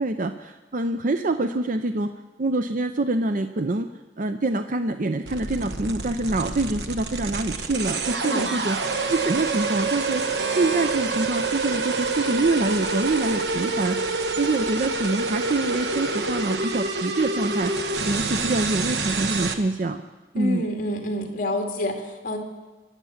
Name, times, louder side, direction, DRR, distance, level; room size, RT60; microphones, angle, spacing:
voice 1, 0.0-2.1 2.4-3.9 4.2-8.8 9.1-10.2 10.5-14.0 14.4-17.7 18.1-20.0 20.3-20.6, right 2 dB, 50° right, 8 dB, 0.6 m, -25 dB
sound 1, 5.3-19.5, right 3 dB, 70° right, 1.2 m, -27 dB
voice 2, 8.2-8.5 20.3-22.4, left 1 dB, 45° left, 3 dB, 2.4 m, -28 dB
23.5 x 8.1 x 7.3 m, 1.2 s
head